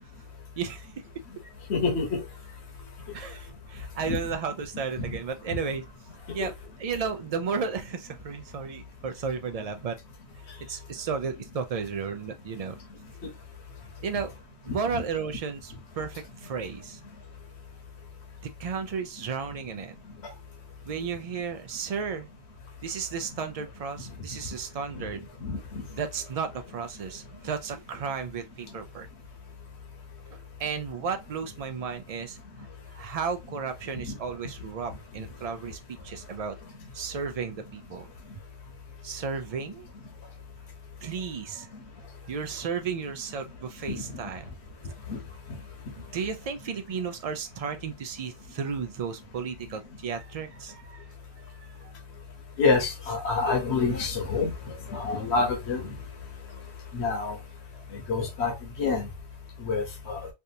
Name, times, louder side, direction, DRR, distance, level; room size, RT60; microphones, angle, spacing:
voice 1, 0.6-1.1 3.1-5.9 6.3-6.5 6.8-10.0 10.6-12.8 14.0-14.3 14.7-17.0 18.6-19.9 20.8-22.3 22.8-25.3 25.9-29.1 30.3-32.4 32.9-36.6 36.9-38.1 39.0-39.9 41.0-41.7 42.2-44.5 46.0-51.0 51.5-51.9 57.7-57.9, right 6 dB, 75° right, 0.3 m, -34 dB
voice 2, 1.7-2.1 4.1-4.2 6.4-6.5 14.9-15.0 25.4-25.6 34.0-34.1 43.9-44.0 45.1-45.2 52.6-55.9 56.9-57.4 58.1-58.5 58.8-59.1 59.6-60.3, left 4 dB, 70° left, 1.3 m, -27 dB
3.4 x 2.5 x 2.7 m
omnidirectional pair, 1.2 m